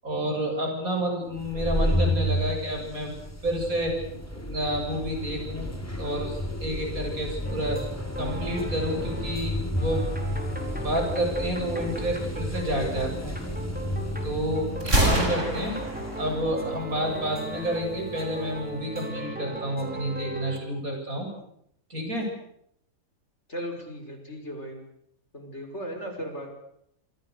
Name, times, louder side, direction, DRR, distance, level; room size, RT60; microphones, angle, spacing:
voice 1, 0.0-3.1 3.4-3.9 4.3-5.7 6.0-7.8 8.2-10.2 10.8-13.3 14.2-15.8 16.2-21.3 21.9-22.3, right 1 dB, 75° right, 2 dB, 8.6 m, -29 dB
sound 1, 1.4-18.7, left 1 dB, 10° left, 3.5 m, -32 dB
sound 2, 7.4-9.5 9.8-20.6, right 1 dB, 5° right, 4.7 m, -38 dB
Gunshot gunfire, 14.8-16.8, right 1 dB, 55° right, 7.2 m, -26 dB
voice 2, 23.5-24.8 25.3-26.6, equal, 50° left, 5 dB, 6.0 m, -37 dB
27.5 x 25.5 x 6.8 m, 0.71 s
omnidirectional pair, 1.5 m